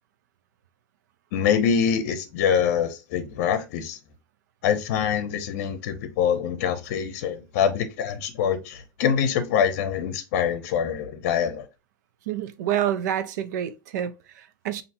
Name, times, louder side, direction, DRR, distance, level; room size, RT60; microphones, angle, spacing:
voice 1, 1.3-4.0 4.6-11.7, left 8 dB, 45° left, 0.8 m, -24 dB
voice 2, 12.3-14.8, right 10 dB, 60° right, 0.6 m, -28 dB
5.7 x 2.7 x 2.6 m
supercardioid pair, 175°, 11 cm